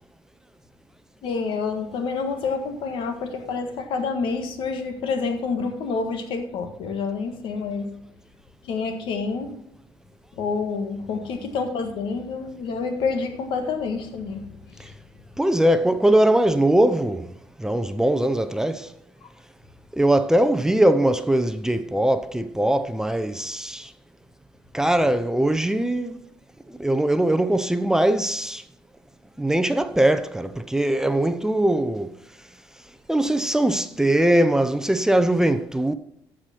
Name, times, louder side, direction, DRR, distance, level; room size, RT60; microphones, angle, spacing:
voice 1, 1.2-7.9 8.6-9.6 10.3-14.9 19.2-19.3, left 4 dB, 75° left, 1.6 m, -28 dB
voice 2, 15.4-17.3 17.6-18.9 19.9-23.9 24.7-26.2 26.7-28.6 29.4-32.2 33.1-35.9, right 1 dB, 5° right, 0.7 m, -21 dB
14.0 x 5.0 x 5.8 m
cardioid pair, 85°, 9 cm